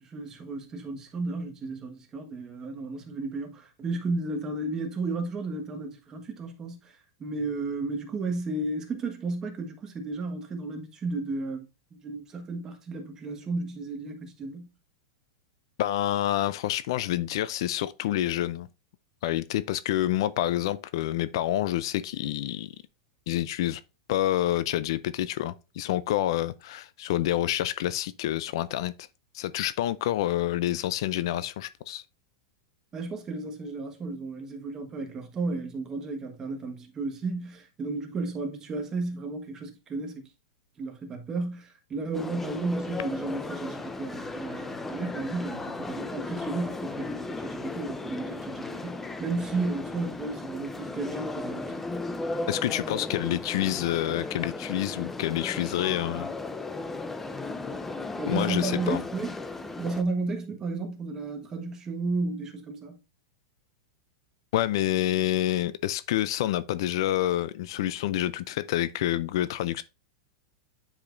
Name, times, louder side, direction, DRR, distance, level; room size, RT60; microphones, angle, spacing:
voice 1, 0.0-11.6 11.9-14.7 32.9-40.3 40.8-51.8 58.2-59.4 59.8-63.0, right 3 dB, 20° right, 1.3 m, -33 dB
voice 2, 15.8-18.7 19.2-22.7 23.3-23.8 24.1-28.9 29.3-32.0 52.5-56.3 58.3-59.0 64.5-69.8, left 13 dB, 65° left, 0.4 m, -28 dB
sound 1, 42.1-60.0, left 3 dB, 10° left, 0.5 m, -36 dB
8.5 x 5.0 x 2.5 m
supercardioid pair, 145°, 3 cm